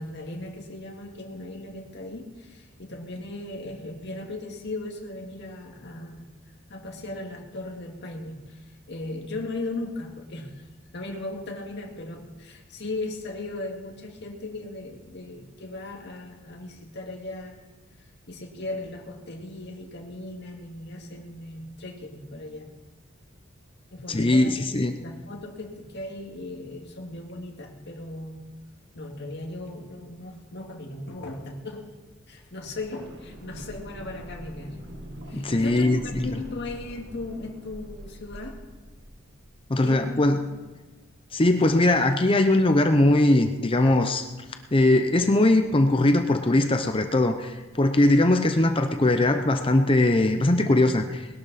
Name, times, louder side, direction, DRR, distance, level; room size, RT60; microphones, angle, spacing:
voice 1, 0.0-6.2 6.7-10.7 10.9-17.6 18.0-22.7 23.9-28.4 28.9-31.9 32.3-34.8 35.3-38.6 39.8-40.2 40.5-40.6, left 2 dB, 55° left, 0 dB, 2.1 m, -37 dB
voice 2, 24.1-24.9 35.3-36.2 39.7-40.4 41.3-44.3 44.7-51.3, left 1 dB, 25° left, 7 dB, 0.7 m, -20 dB
sound 1, 32.5-40.4 40.6-40.7, equal, 60° right, 1.7 m, -43 dB
20.5 x 12.0 x 4.2 m, 1.3 s
head